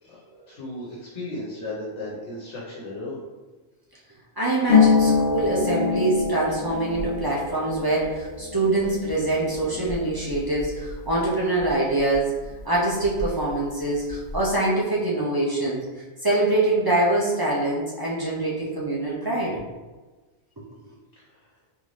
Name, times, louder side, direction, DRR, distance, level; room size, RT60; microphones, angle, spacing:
voice 1, 0.5-3.2 21.2-21.4, left 2 dB, 85° left, -5 dB, 1.2 m, -35 dB
voice 2, 4.4-12.3 12.6-15.9 16.2-19.5, right 2 dB, 30° right, -6 dB, 0.5 m, -24 dB
Harp, 4.7-12.2 12.4-13.5 13.8-14.4, left 5 dB, 55° left, 0.9 m, -26 dB
3.5 x 2.6 x 3.1 m, 1.3 s
omnidirectional pair, 1.2 m